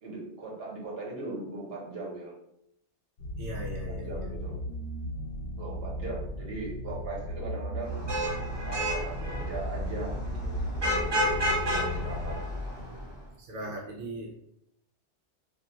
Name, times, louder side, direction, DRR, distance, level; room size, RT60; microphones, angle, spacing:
voice 1, 0.0-2.3 3.9-4.6 5.6-8.0 8.6-12.4 13.6-13.7, right 3 dB, 60° right, -3 dB, 1.1 m, -39 dB
sound 1, 3.2-12.4, equal, 60° left, 0.7 m, -36 dB
voice 2, 3.4-4.1 13.4-14.3, right 1 dB, 90° right, -2 dB, 0.9 m, -38 dB
Vehicle horn car horn honking / Traffic noise roadway noise, 7.8-13.1, equal, 30° right, 0.6 m, -31 dB
2.5 x 2.3 x 4.0 m, 0.75 s
omnidirectional pair, 1.2 m